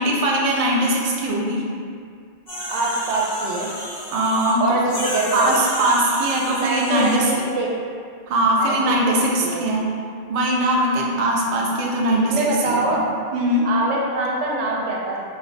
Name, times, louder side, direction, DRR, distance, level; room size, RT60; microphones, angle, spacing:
voice 1, 0.0-1.6 4.1-4.8 5.3-7.4 8.3-9.8 10.3-13.0 13.3-13.7, right 1 dB, 70° right, -2 dB, 0.3 m, -21 dB
sound 1, 2.5-4.5 4.9-7.2, equal, 25° left, 0.5 m, -31 dB
voice 2, 2.7-3.7 4.6-5.6 6.6-7.7 8.6-9.1 9.4-9.6 12.3-13.0 13.6-15.2, right 2 dB, 85° right, -3 dB, 0.9 m, -24 dB
2.7 x 2.1 x 3.9 m, 2.3 s
omnidirectional pair, 1.2 m